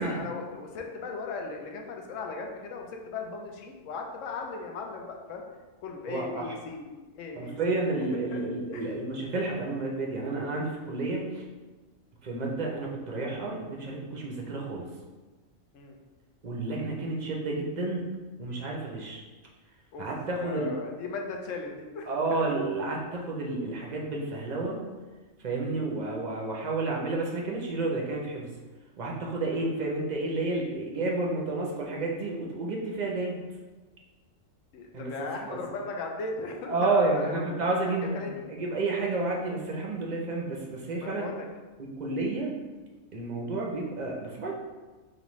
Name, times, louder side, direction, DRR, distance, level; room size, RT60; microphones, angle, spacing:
voice 1, 0.0-5.4 5.8-7.8 8.3-8.4 8.7-8.8 15.7-16.0 19.9-20.1 20.4-22.4 26.0-26.2 29.4-29.6 34.7-37.5 38.1-38.5 41.0-41.5, left 4 dB, 75° left, 2 dB, 1.0 m, -37 dB
voice 2, 6.1-6.6 7.3-11.5 12.2-14.9 16.4-18.1 18.4-19.2 20.0-20.7 22.1-24.8 25.4-28.5 29.0-33.4 34.9-35.6 36.7-41.3 42.0-42.5 43.1-44.5, right 3 dB, 50° right, -2 dB, 0.5 m, -31 dB
5.2 x 2.5 x 3.0 m, 1.3 s
omnidirectional pair, 1.4 m